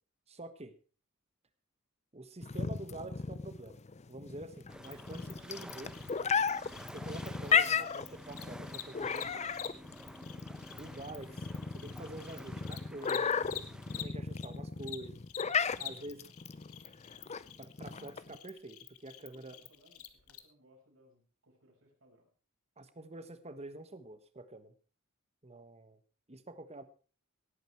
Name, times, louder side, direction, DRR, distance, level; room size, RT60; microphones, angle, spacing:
voice 1, 0.3-0.7 2.1-3.8 4.1-6.0 6.9-9.4 10.8-11.5 11.7-13.4 14.0-15.2 15.8-16.2 17.6-19.6 22.8-24.7 25.4-26.0 26.3-26.8, right 2 dB, 30° right, 11 dB, 1.3 m, -47 dB
sound 1, 2.4-18.4, left 6 dB, 30° left, 0.5 m, -34 dB
sound 2, 4.7-14.1, equal, 5° right, 0.9 m, -51 dB
Cricket, 4.8-14.5 14.8-20.4, left 13 dB, 85° left, 1.3 m, -48 dB
voice 2, 15.7-16.2 16.5-16.9 19.3-22.3, equal, 65° right, 0 dB, 5.8 m, -66 dB
17.5 x 9.0 x 4.6 m, 0.37 s
head